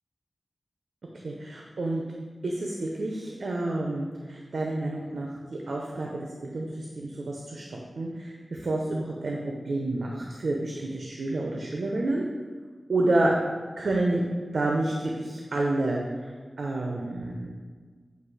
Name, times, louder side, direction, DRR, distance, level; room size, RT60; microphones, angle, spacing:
voice 1, 1.2-2.0 2.4-12.2 12.9-13.3 13.8-14.2 14.5-16.0 16.6-17.5, right 2 dB, 90° right, -1 dB, 0.6 m, -29 dB
8.0 x 2.7 x 4.8 m, 1.5 s
wide cardioid pair, 70°, 0 cm